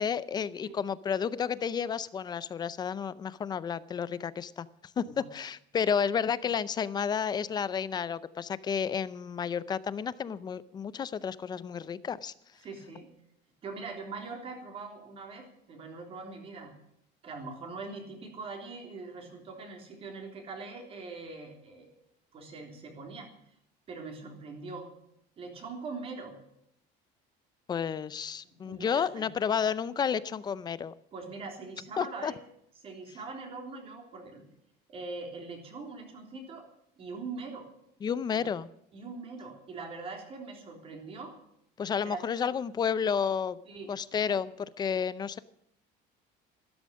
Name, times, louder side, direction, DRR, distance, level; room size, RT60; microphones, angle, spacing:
voice 1, 0.0-4.7 5.0-12.3 27.7-30.9 32.0-32.3 38.0-38.7 41.8-43.6 43.9-45.4, left 7 dB, 20° left, 17 dB, 0.5 m, -31 dB
voice 2, 12.6-13.1 13.6-16.7 17.2-21.9 22.3-23.3 23.9-24.9 25.4-26.4 28.4-29.3 31.1-32.4 32.8-34.5 34.9-36.7 37.0-37.7 38.3-38.5 38.9-41.4 42.0-42.6 43.7-43.9 44.3-44.4, right 3 dB, 30° right, 3 dB, 3.4 m, -42 dB
14.0 x 13.0 x 6.3 m, 0.76 s
cardioid pair, 175°, 19 cm